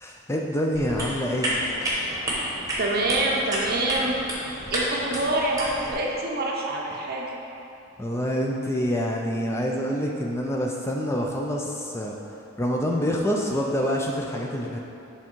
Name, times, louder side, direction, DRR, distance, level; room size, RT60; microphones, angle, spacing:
voice 1, 0.0-1.6 8.0-12.2 12.6-14.8, equal, 10° left, -1 dB, 0.3 m, -26 dB
sound 1, 0.7-5.9, equal, 15° right, 1.0 m, -30 dB
voice 2, 2.8-4.1 4.7-7.3, right 2 dB, 45° right, -1 dB, 0.6 m, -26 dB
7.2 x 3.5 x 4.4 m, 2.8 s
head